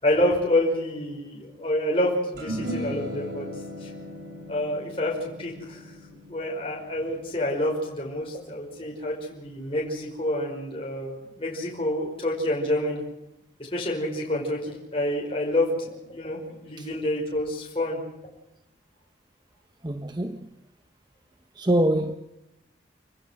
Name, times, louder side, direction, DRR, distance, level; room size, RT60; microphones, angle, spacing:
voice 1, 0.0-3.5 3.8-3.9 4.5-5.9 6.3-13.0 13.7-18.0, left 1 dB, 30° left, 5.4 m, -28 dB
sound 1, 2.4-8.9, equal, 65° right, 6.9 m, -38 dB
voice 2, 19.8-20.5 21.5-22.2, right 1 dB, 25° right, 0.9 m, -24 dB
30.0 x 16.5 x 6.4 m
head